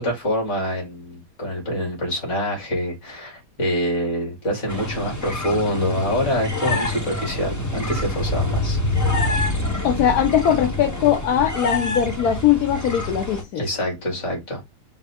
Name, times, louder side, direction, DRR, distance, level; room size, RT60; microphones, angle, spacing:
voice 1, 0.0-8.8 13.6-14.6, equal, 45° left, 2.5 m, -26 dB
sound 1, 4.7-13.4, left 2 dB, 30° left, 0.3 m, -26 dB
voice 2, 9.8-13.6, left 9 dB, 70° left, 1.2 m, -20 dB
5.2 x 2.7 x 3.4 m
omnidirectional pair, 1.8 m